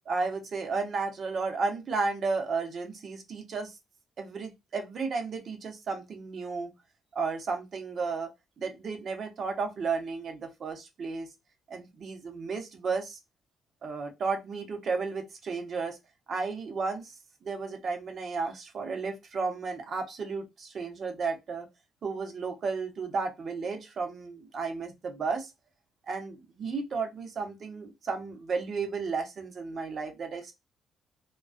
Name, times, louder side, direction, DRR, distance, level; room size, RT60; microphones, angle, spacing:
voice 1, 0.1-3.8 4.2-6.7 7.1-8.3 8.6-11.3 11.7-13.2 13.8-16.0 16.3-17.1 17.4-21.7 22.0-25.5 26.0-30.5, right 4 dB, 55° right, 0.7 m, -33 dB
2.4 x 2.2 x 2.4 m
cardioid pair, 90°, 0 cm